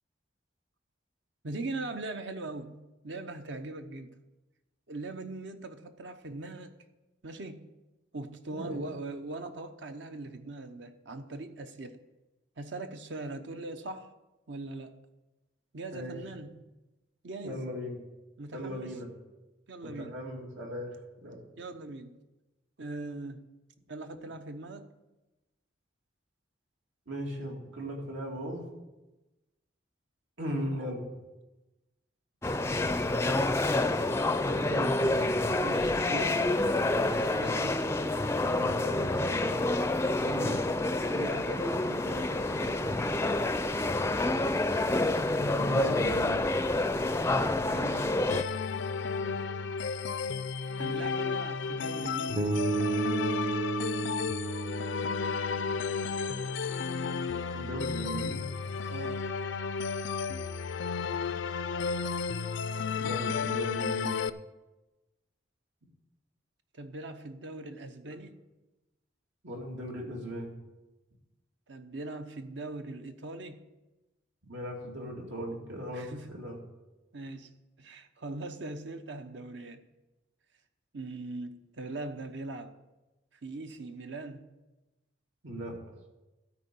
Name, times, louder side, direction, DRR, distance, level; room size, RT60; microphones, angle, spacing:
voice 1, 1.4-4.2 4.9-6.7 7.2-7.7 8.1-12.0 12.6-14.1 14.5-14.9 15.7-16.7 17.2-17.7 18.4-19.0 19.7-20.2 21.6-22.2 22.8-23.5 23.9-24.9 35.6-37.9 40.2-40.9 41.1-43.1 47.7-48.2 50.8-52.9 58.9-59.2 66.7-68.4 71.7-73.7 75.9-76.4 77.1-77.5 77.8-79.8 80.9-82.7 83.4-84.5, right 2 dB, 70° right, 0.8 m, -41 dB
voice 2, 8.5-8.8 15.9-16.2 17.4-18.0 18.5-19.1 19.8-21.0 21.2-21.4 27.1-28.6 30.4-31.0 34.4-35.3 38.4-39.6 45.6-46.4 57.5-58.5 63.0-64.2 69.4-70.5 74.4-76.6 85.4-85.8, equal, 85° right, 2.6 m, -38 dB
sound 1, 32.4-48.4, left 2 dB, 15° left, 0.4 m, -28 dB
sound 2, 48.3-64.3, left 5 dB, 70° left, 0.4 m, -33 dB
Bass guitar, 52.4-56.4, right 4 dB, 35° right, 0.7 m, -33 dB
13.0 x 4.6 x 8.6 m
head